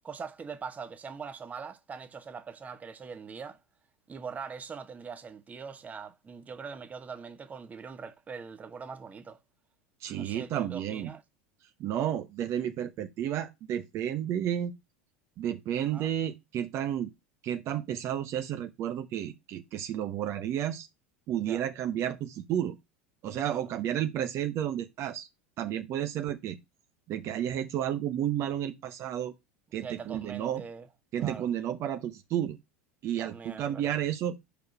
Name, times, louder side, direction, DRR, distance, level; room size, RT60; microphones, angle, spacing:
voice 1, 0.0-3.6 4.1-9.4 10.1-11.2 15.9-16.1 21.4-21.6 23.5-23.7 29.8-30.9 31.2-31.5 33.2-34.0, right 5 dB, 25° right, 1.2 m, -42 dB
voice 2, 10.0-11.1 11.8-14.7 15.4-17.1 17.4-20.9 21.3-22.8 23.2-25.3 25.6-26.6 27.1-29.3 29.7-30.6 31.1-32.6 33.0-34.4, right 10 dB, 45° right, 1.0 m, -31 dB
5.1 x 4.8 x 6.0 m
hypercardioid pair, 95°, 6 cm